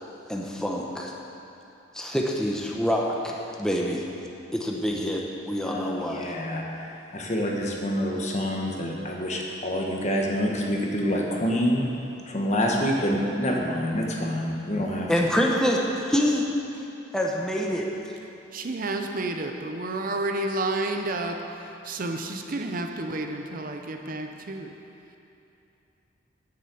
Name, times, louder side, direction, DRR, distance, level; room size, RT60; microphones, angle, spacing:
voice 1, 0.3-1.1 1.9-4.0 4.5-6.3 15.1-16.5 17.1-17.9, equal, 5° left, -2 dB, 0.8 m, -26 dB
voice 2, 5.6-11.9 12.2-15.3, equal, 40° left, -1 dB, 1.4 m, -27 dB
voice 3, 18.5-24.7, right 2 dB, 50° right, 4 dB, 0.7 m, -30 dB
9.8 x 7.5 x 7.0 m, 2.8 s
head